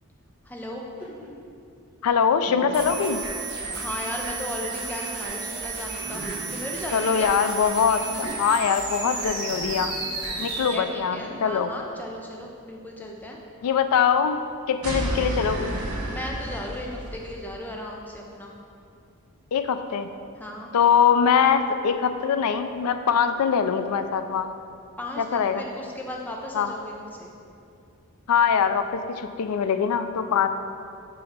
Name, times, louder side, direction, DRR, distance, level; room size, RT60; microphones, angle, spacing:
voice 1, 0.4-0.8 3.8-6.2 6.5-7.4 10.4-13.4 16.1-18.5 20.4-20.7 25.0-27.3, left 1 dB, 10° left, -1 dB, 0.4 m, -36 dB
Woman female laughing giggling, 0.9-1.3 1.9-2.0 2.4-3.0 3.6-3.7 6.0-6.6 7.9-8.4 9.5-9.9 10.9-11.7, equal, 35° left, 1.2 m, -40 dB
voice 2, 2.0-3.2 6.9-10.0 10.4-11.7 13.6-14.4 14.7-15.7 19.5-20.1 20.7-24.5 25.2-25.6 26.5-26.7 28.3-30.5, left 7 dB, 85° left, 9 dB, 0.4 m, -22 dB
sound 1, 2.7-10.7, right 4 dB, 50° right, 1.3 m, -33 dB
sound 2, 14.8-17.4, right 1 dB, 80° right, 0.9 m, -30 dB
4.8 x 4.1 x 5.1 m, 2.5 s
head